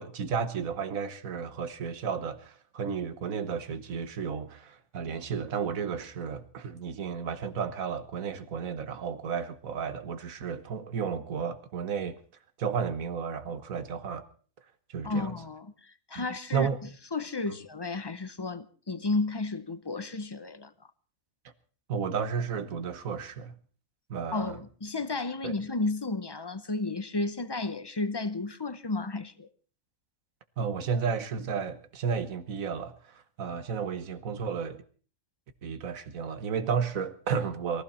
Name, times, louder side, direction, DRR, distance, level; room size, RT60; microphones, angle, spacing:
voice 1, 0.0-12.2 12.6-14.2 14.9-15.3 16.1-16.2 16.5-16.8 21.9-23.5 24.1-24.6 25.4-25.5 30.6-34.8 35.6-37.8, right 6 dB, 85° right, 1.6 m, -33 dB
voice 2, 15.0-16.7 17.1-20.7 24.3-29.5, left 3 dB, 25° left, 0.6 m, -32 dB
22.0 x 15.0 x 4.2 m
omnidirectional pair, 1.4 m